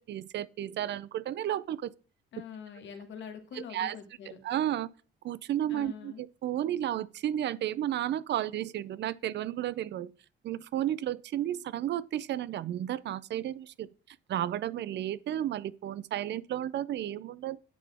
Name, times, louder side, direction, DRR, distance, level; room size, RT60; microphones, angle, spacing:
voice 1, 0.1-1.9 3.5-4.0 4.4-4.9 5.2-10.1 10.4-13.9 14.3-17.6, right 12 dB, 60° right, 0.4 m, -32 dB
voice 2, 2.3-4.4 5.7-6.2, left 7 dB, 70° left, 1.5 m, -44 dB
9.3 x 4.0 x 3.4 m
cardioid pair, 90°, 20 cm